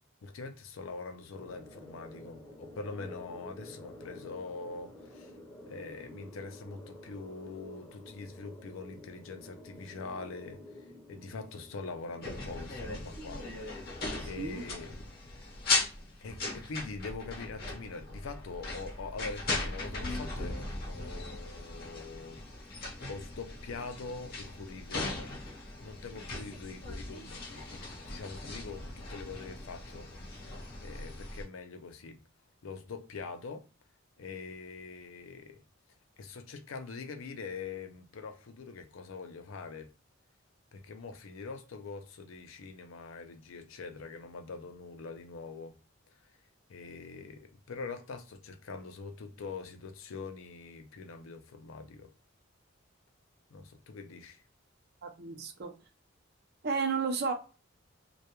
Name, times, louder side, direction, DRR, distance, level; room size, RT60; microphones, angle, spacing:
voice 1, 0.2-5.4 5.7-13.5 14.2-15.0 15.4-15.5 16.2-22.4 23.1-25.3 25.8-30.1 30.4-30.5 30.8-32.2 32.6-33.7 34.2-35.6 36.2-39.9 40.7-45.7 46.2-46.3 46.7-52.1 53.5-54.4, left 4 dB, 80° left, 0.5 m, -44 dB
sound 1, 1.3-14.8, left 1 dB, 10° left, 0.6 m, -51 dB
sound 2, 12.2-31.4, left 2 dB, 50° left, 0.8 m, -38 dB
voice 2, 14.2-14.7 55.0-55.7 56.6-57.3, right 5 dB, 50° right, 0.5 m, -33 dB
2.2 x 2.2 x 2.8 m
head